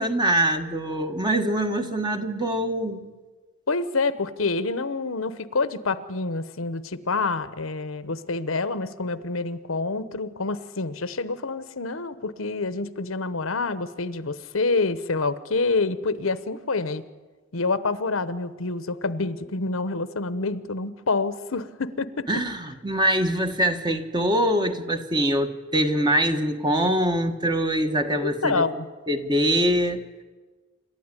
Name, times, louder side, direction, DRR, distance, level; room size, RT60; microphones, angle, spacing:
voice 1, 0.0-3.1 22.3-28.6 29.1-30.0, right 1 dB, 20° right, 6 dB, 1.3 m, -23 dB
voice 2, 3.7-17.0 17.5-22.3 28.2-28.9, left 3 dB, 80° left, 13 dB, 1.0 m, -27 dB
27.5 x 12.5 x 9.8 m, 1.4 s
head